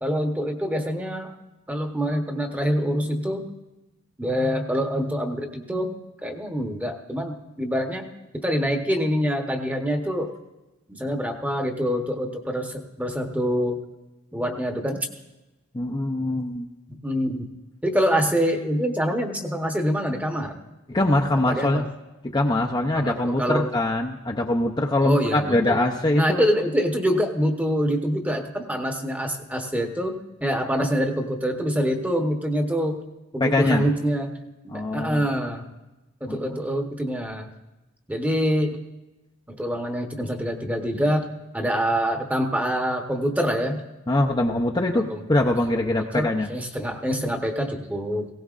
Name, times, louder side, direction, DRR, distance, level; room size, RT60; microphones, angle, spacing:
voice 1, 0.0-1.3 1.7-3.5 4.2-8.1 8.3-10.3 10.9-13.8 14.3-15.1 17.0-17.5 17.8-20.6 21.5-21.9 22.9-23.7 25.0-25.8 26.1-33.0 33.3-34.4 34.6-35.6 36.2-37.5 38.1-38.8 39.5-41.3 41.5-43.8 44.9-45.2 45.9-48.3, equal, 5° right, 4 dB, 1.0 m, -25 dB
voice 2, 15.7-16.7 20.9-21.8 22.3-26.4 30.8-30.9 33.4-33.8 34.7-35.3 36.3-36.6 44.1-46.5, left 1 dB, 20° left, 0 dB, 0.6 m, -23 dB
18.5 x 17.0 x 2.5 m, 1.0 s
head